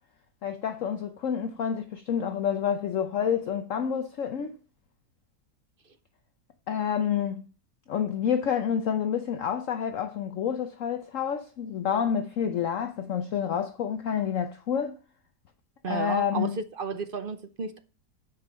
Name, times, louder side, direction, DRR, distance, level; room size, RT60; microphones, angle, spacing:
voice 1, 0.4-4.5 6.7-7.5 7.9-15.0 15.9-16.6, left 8 dB, 60° left, 1.0 m, -28 dB
voice 2, 15.8-17.8, right 5 dB, 45° right, 0.8 m, -32 dB
9.9 x 5.4 x 6.3 m
omnidirectional pair, 1.7 m